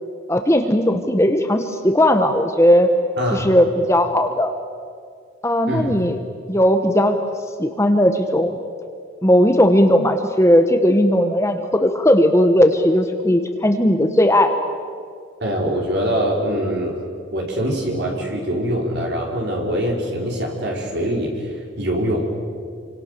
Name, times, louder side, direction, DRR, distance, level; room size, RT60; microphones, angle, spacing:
voice 1, 0.3-2.9 3.3-4.5 5.4-6.2 6.5-7.2 7.6-8.5 9.2-14.5, equal, 15° left, 6 dB, 1.1 m, -17 dB
voice 2, 3.2-3.5 5.7-5.9 15.4-17.0 17.3-22.3, equal, 55° right, -1 dB, 5.2 m, -23 dB
27.5 x 25.5 x 6.9 m, 2.2 s
head